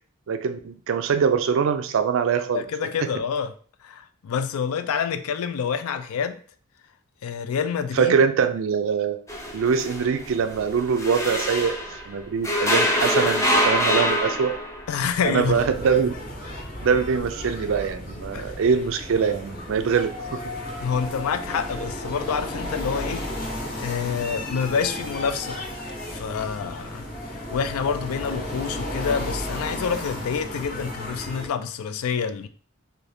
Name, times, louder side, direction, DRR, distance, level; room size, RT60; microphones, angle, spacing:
voice 1, 0.3-2.6 3.0-3.1 8.0-9.2 9.5-14.6 15.2-16.1 16.8-20.4, right 6 dB, 65° right, 0.3 m, -23 dB
voice 2, 2.5-3.5 3.8-6.4 7.2-8.2 14.9-15.6 18.3-18.6 20.8-25.6 26.1-32.5, left 6 dB, 85° left, 0.3 m, -27 dB
sound 1, 9.3-12.1 12.4-14.9, equal, 15° left, 0.4 m, -24 dB
sound 2, 15.4-31.5, left 1 dB, 40° left, 0.8 m, -34 dB
2.7 x 2.6 x 3.3 m
head